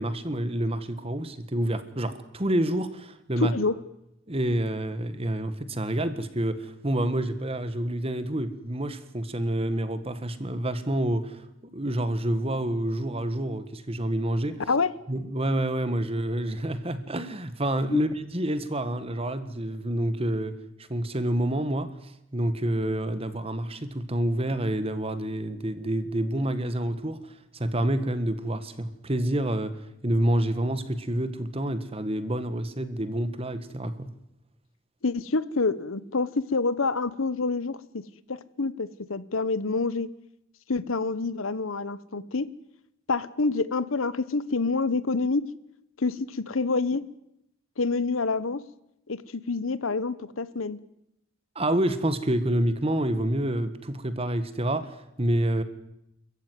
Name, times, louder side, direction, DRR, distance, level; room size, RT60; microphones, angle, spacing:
voice 1, 0.0-3.5 4.3-11.4 11.7-14.6 15.1-20.6 20.9-21.9 22.3-27.2 27.5-34.1 51.6-55.6, right 1 dB, 30° right, 12 dB, 1.6 m, -28 dB
voice 2, 3.4-3.7 14.7-14.9 17.9-18.0 35.0-38.0 38.3-40.1 40.7-42.5 43.1-45.5 46.0-47.0 47.8-48.6 49.1-50.8, left 3 dB, 90° left, 17 dB, 1.0 m, -27 dB
27.0 x 14.5 x 9.4 m, 0.82 s
head